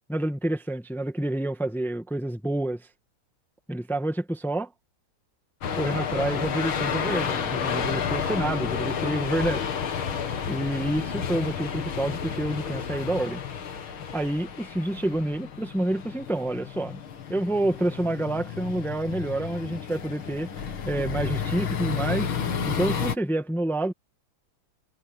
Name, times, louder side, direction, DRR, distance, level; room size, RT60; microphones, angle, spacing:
voice 1, 0.1-2.9 3.7-4.7 5.8-9.7 10.5-13.4 14.1-17.0 17.3-22.3 22.6-23.9, right 1 dB, ahead, 1.1 m, -28 dB
sound 1, 5.6-23.2, left 7 dB, 75° left, 2.6 m, -31 dB
omnidirectional pair, 2.3 m